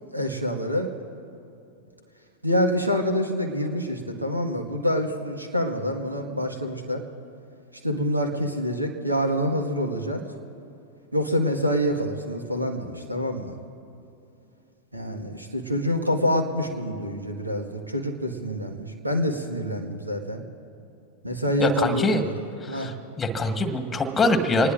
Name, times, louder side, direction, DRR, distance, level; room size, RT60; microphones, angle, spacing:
voice 1, 0.1-0.9 2.4-7.0 7.8-10.2 11.1-13.6 14.9-20.4 21.2-22.3 22.7-22.9, equal, 85° right, 4 dB, 1.7 m, -26 dB
voice 2, 21.6-22.2 22.6-24.7, left 2 dB, 15° left, 7 dB, 1.5 m, -24 dB
26.0 x 19.5 x 2.6 m, 2.8 s
figure-of-eight pair, 90°, 0 cm